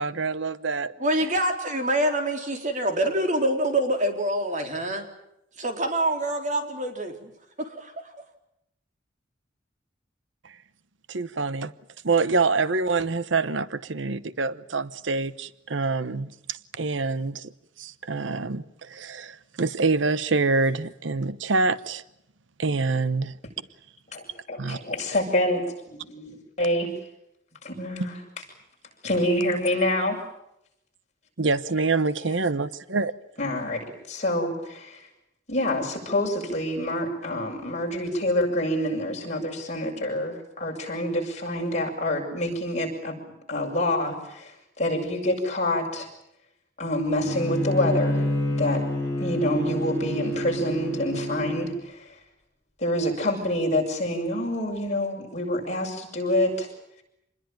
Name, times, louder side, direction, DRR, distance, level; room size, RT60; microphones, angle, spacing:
voice 1, 0.0-0.9 10.4-10.5 11.1-11.7 12.0-17.5 17.8-22.0 22.6-23.3 24.6-24.8 31.4-33.1, right 3 dB, 85° right, 1.0 m, -26 dB
voice 2, 1.0-5.1 5.6-7.3 7.6-8.1, right 1 dB, 40° right, 4.1 m, -26 dB
voice 3, 24.1-26.9 27.6-28.2 29.0-30.2 33.4-35.0 35.5-43.2 43.5-46.1 46.8-48.2 48.5-48.8 49.2-52.1 52.8-56.7, left 1 dB, 40° left, 7.5 m, -27 dB
Bowed string instrument, 47.2-51.7, equal, 15° left, 7.8 m, -28 dB
27.0 x 21.0 x 9.1 m
head